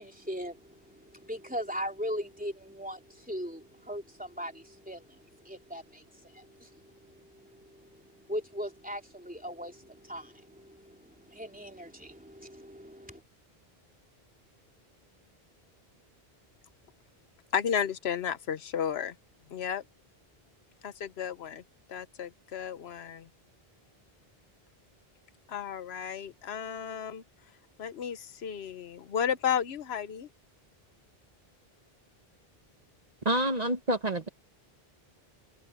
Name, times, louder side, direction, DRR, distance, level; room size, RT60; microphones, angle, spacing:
voice 1, 0.0-13.2, equal, 10° right, 3.0 m, -40 dB
voice 2, 17.5-19.1 19.5-19.8 20.8-21.6 21.9-23.3 25.5-27.2 27.8-30.3, left 8 dB, 90° left, 1.1 m, -33 dB
voice 3, 33.2-34.3, right 1 dB, 40° right, 1.2 m, -27 dB
open air
omnidirectional pair, 1.0 m